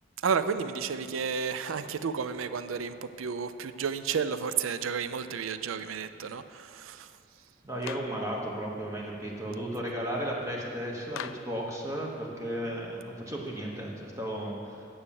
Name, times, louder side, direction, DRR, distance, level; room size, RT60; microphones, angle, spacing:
voice 1, 0.2-7.1, right 6 dB, 80° right, 12 dB, 0.4 m, -32 dB
voice 2, 7.6-14.8, right 1 dB, 15° right, -2 dB, 1.1 m, -34 dB
Clapping, 7.8-8.2 11.1-11.6, left 10 dB, 85° left, 0.3 m, -40 dB
9.7 x 7.1 x 7.1 m, 2.5 s
head